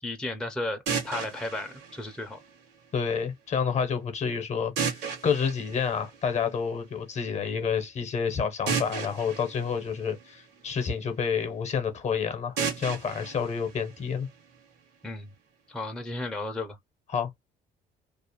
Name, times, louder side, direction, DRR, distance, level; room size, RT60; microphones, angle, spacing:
voice 1, 0.0-2.4 15.0-15.3 15.7-16.8, left 2 dB, 5° left, 0.5 m, -34 dB
sound 1, 0.9-2.9 4.8-6.7 8.7-10.9 12.6-14.6, right 6 dB, 85° right, 1.1 m, -34 dB
voice 2, 2.9-14.3 17.1-17.3, left 6 dB, 40° left, 0.7 m, -29 dB
2.4 x 2.0 x 2.8 m
cardioid pair, 110°, 17 cm